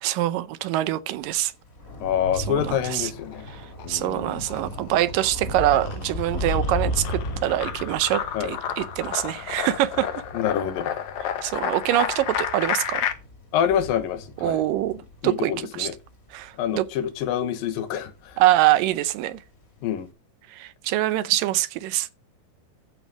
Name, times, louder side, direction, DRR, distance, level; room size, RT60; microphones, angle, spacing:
voice 1, 0.0-1.5 2.5-3.1 3.9-10.1 11.4-13.1 14.4-15.0 15.2-15.5 15.8-15.9 16.3-16.8 18.4-19.4 20.5-22.1, right 14 dB, 80° right, 2.3 m, -24 dB
Thunder / Rain, 1.2-17.8 18.1-18.6 18.9-19.0, left 1 dB, 30° left, 1.7 m, -35 dB
voice 2, 2.0-3.5 3.8-4.5 8.3-8.6 10.3-11.0 13.5-14.6 15.2-16.0 16.6-18.4 19.8-20.1, left 9 dB, 85° left, 2.9 m, -27 dB
sound 1, 3.2-4.0 4.3-13.1, left 9 dB, 65° left, 2.1 m, -31 dB
13.5 x 5.2 x 6.2 m
omnidirectional pair, 3.9 m